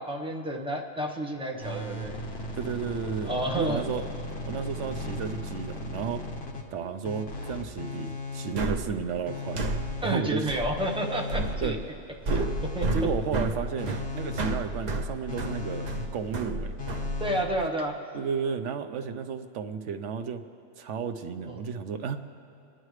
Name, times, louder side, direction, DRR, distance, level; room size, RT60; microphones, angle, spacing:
voice 1, 0.1-2.2 3.2-3.8 10.0-11.8 12.3-12.4 12.7-12.9 17.2-18.0 21.5-21.6, right 1 dB, 5° right, 0 dB, 0.8 m, -30 dB
sound 1, 1.6-6.7 7.0-8.9 9.2-10.4 10.8-11.9 12.3-13.4 13.8-14.9 15.3-16.4 16.8-17.4, left 2 dB, 50° left, 1.4 m, -37 dB
voice 2, 2.5-4.0 4.4-6.2 6.7-9.6 10.0-10.5 11.6-11.8 12.3-12.5 12.9-16.8 18.1-20.4 20.8-22.2, right 6 dB, 70° right, 8 dB, 0.9 m, -33 dB
sound 2, 8.6-17.7, right 2 dB, 45° right, 0.6 m, -32 dB
30.0 x 10.0 x 3.2 m, 2.7 s
omnidirectional pair, 1.4 m